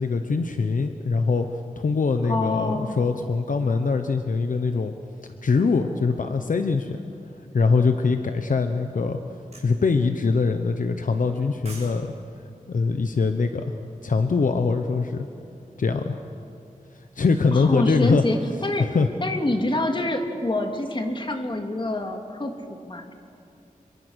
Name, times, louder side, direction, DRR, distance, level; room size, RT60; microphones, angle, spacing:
voice 1, 0.0-1.5 1.8-4.9 5.4-7.0 7.5-9.2 9.6-12.1 12.7-13.7 14.0-15.3 15.8-16.2 17.2-18.2 18.8-19.1, left 4 dB, 70° left, 7 dB, 1.1 m, -23 dB
voice 2, 2.2-3.0 17.5-18.9 19.2-23.1, left 2 dB, 35° left, 4 dB, 2.5 m, -26 dB
sound 1, 9.5-9.7 11.3-12.0 12.3-12.4, right 2 dB, 50° right, 6.4 m, -43 dB
27.5 x 23.5 x 6.4 m, 2.6 s
wide cardioid pair, 90°, 14 cm